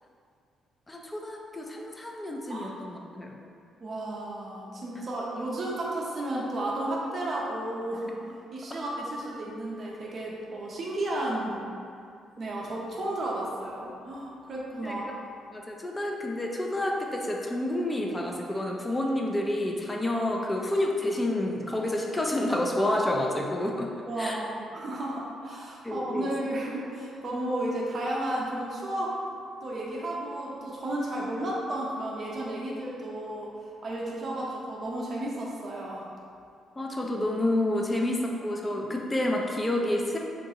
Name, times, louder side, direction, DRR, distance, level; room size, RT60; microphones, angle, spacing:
voice 1, 0.9-3.4 14.8-15.0 15.5-24.4 25.8-26.3 36.8-40.2, left 1 dB, 15° left, 0 dB, 0.4 m, -29 dB
voice 2, 2.5-2.8 3.8-8.2 8.5-11.7 12.4-15.4 24.1-29.1 29.6-33.5 33.8-36.1, right 1 dB, 45° right, -4 dB, 0.6 m, -33 dB
3.7 x 2.4 x 2.7 m, 2.4 s
cardioid pair, 90°, 0 cm